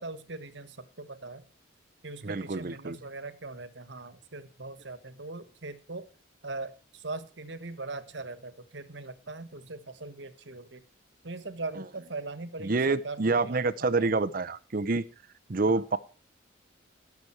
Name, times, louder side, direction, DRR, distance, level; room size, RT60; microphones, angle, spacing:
voice 1, 0.0-1.4 2.0-6.1 6.4-10.8 11.2-14.2 15.7-15.8, right 3 dB, 65° right, 1.5 m, -40 dB
voice 2, 2.2-3.0 11.8-11.9 12.6-15.1 15.5-16.0, right 3 dB, 45° right, 0.7 m, -27 dB
18.0 x 7.0 x 4.6 m
head